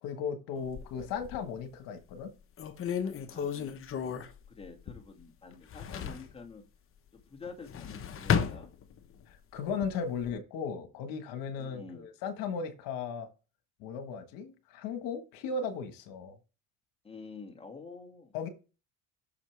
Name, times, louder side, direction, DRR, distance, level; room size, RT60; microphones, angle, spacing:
voice 1, 0.0-2.3 9.3-13.3 13.8-16.4 18.3-18.5, left 5 dB, 80° left, 1.4 m, -36 dB
sound 1, 0.6-1.6 2.1-2.2 2.6-5.2 5.5-6.3 7.5-9.2 9.7-10.3, left 7 dB, 40° left, 1.0 m, -34 dB
voice 2, 3.0-4.0 4.5-6.6 7.3-8.7 11.6-12.1 17.0-18.3, left 4 dB, 15° left, 2.1 m, -48 dB
8.5 x 6.6 x 3.3 m
cardioid pair, 110°, 33 cm